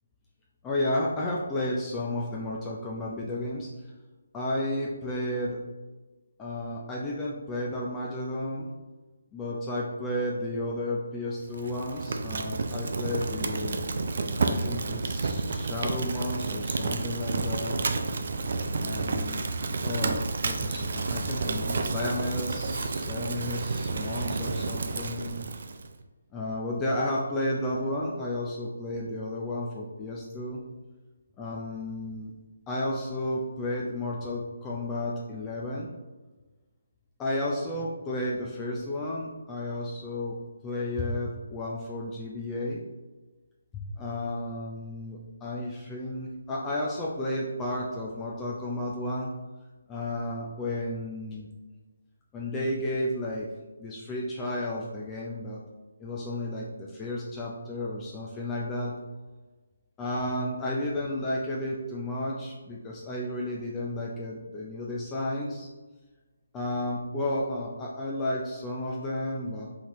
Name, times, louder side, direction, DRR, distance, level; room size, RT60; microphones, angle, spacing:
voice 1, 0.6-3.7 4.3-5.6 6.4-8.7 9.3-13.8 14.5-17.8 18.8-19.4 19.8-25.4 26.3-30.6 31.4-32.3 32.7-35.9 37.2-40.4 40.6-42.8 43.7-49.3 49.9-51.5 52.3-53.5 53.8-55.6 56.0-58.9 60.0-65.7 66.5-69.7, left 1 dB, 15° left, -4 dB, 0.5 m, -32 dB
Fire, 11.5-25.9, right 3 dB, 55° right, 0.4 m, -30 dB
4.3 x 4.0 x 3.1 m, 1.2 s
figure-of-eight pair, 150°, 0 cm